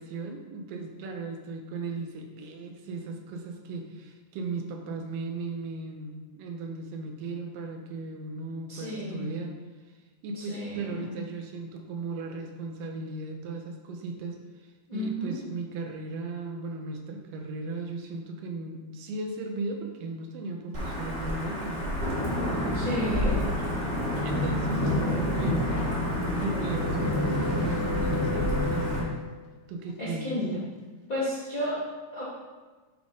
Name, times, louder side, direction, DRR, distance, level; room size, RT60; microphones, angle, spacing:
voice 1, 0.0-9.6 10.2-22.0 24.2-25.7 26.3-29.2 29.7-30.4, right 3 dB, 85° right, 3 dB, 2.4 m, -36 dB
voice 2, 8.7-9.3 10.3-11.1 14.9-15.4 22.7-23.4 30.0-30.6 31.1-31.8 32.1-32.2, equal, 50° left, -8 dB, 1.0 m, -32 dB
Wind / Thunder / Rain, 20.7-29.0, left 1 dB, 55° right, 0.7 m, -28 dB
sound 1, 22.2-28.4, left 1 dB, 70° left, 2.0 m, -38 dB
sound 2, 24.4-29.4 29.9-30.3, left 6 dB, 90° left, 2.6 m, -38 dB
9.7 x 3.6 x 3.9 m, 1.3 s
omnidirectional pair, 3.9 m